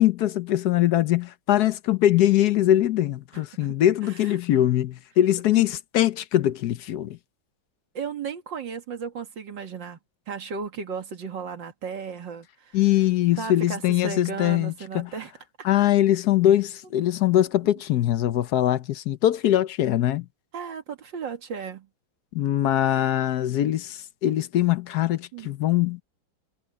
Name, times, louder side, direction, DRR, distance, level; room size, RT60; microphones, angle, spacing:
voice 1, 0.0-7.2 12.7-15.1 15.6-20.2 22.3-26.0, left 12 dB, 65° left, 1.1 m, -22 dB
voice 2, 3.3-3.7 4.0-4.4 5.5-5.6 7.9-10.0 10.3-12.8 13.4-15.3 20.5-21.9 25.3-25.5, right 6 dB, 70° right, 2.5 m, -35 dB
omnidirectional pair, 2.1 m